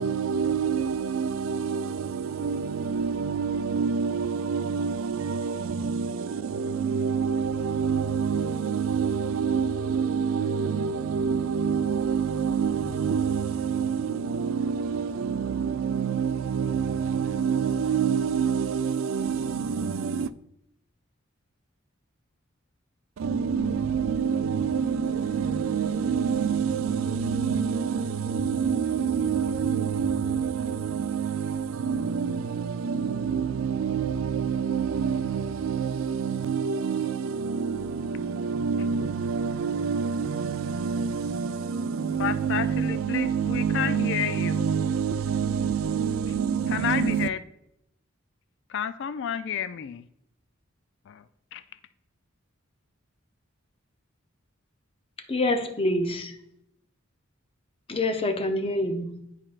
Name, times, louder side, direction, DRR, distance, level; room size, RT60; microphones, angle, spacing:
voice 1, 0.0-20.3 23.2-47.3, right 6 dB, 75° right, 0.4 m, -27 dB
voice 2, 42.2-45.0 46.3-46.4 46.7-47.4 48.7-50.1 51.1-51.2 51.5-51.6, left 8 dB, 60° left, 0.3 m, -31 dB
voice 3, 55.3-56.4 57.9-59.2, left 1 dB, 25° left, 0.6 m, -26 dB
10.5 x 4.4 x 2.4 m
head